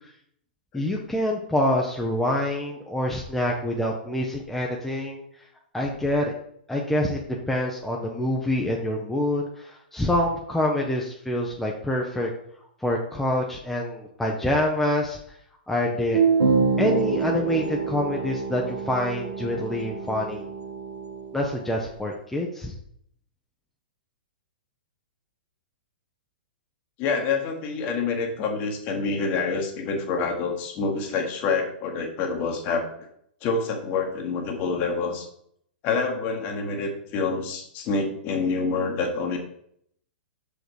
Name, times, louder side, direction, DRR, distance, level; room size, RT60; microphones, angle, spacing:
voice 1, 0.7-5.2 5.7-6.3 6.7-7.2 7.5-12.3 12.8-15.2 15.7-16.2 16.8-20.4 21.3-22.7, left 1 dB, 5° left, -1 dB, 0.8 m, -26 dB
sound 1, 16.1-21.5, right 5 dB, 65° right, 1.6 m, -26 dB
voice 2, 27.0-33.1 33.4-35.3 35.8-39.4, left 4 dB, 35° left, 3 dB, 1.6 m, -27 dB
6.3 x 5.0 x 4.7 m, 0.69 s
figure-of-eight pair, 110°, 5 cm